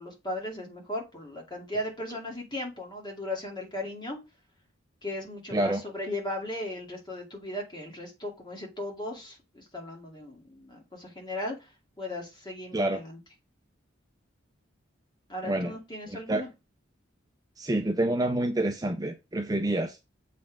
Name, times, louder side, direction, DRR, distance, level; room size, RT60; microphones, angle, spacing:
voice 1, 0.0-4.2 5.0-11.7 12.0-13.2 15.3-16.5, left 1 dB, 20° left, 2.4 m, -37 dB
voice 2, 15.4-15.7 16.1-16.4 17.6-20.0, right 1 dB, 20° right, 0.5 m, -27 dB
7.4 x 4.2 x 4.7 m
head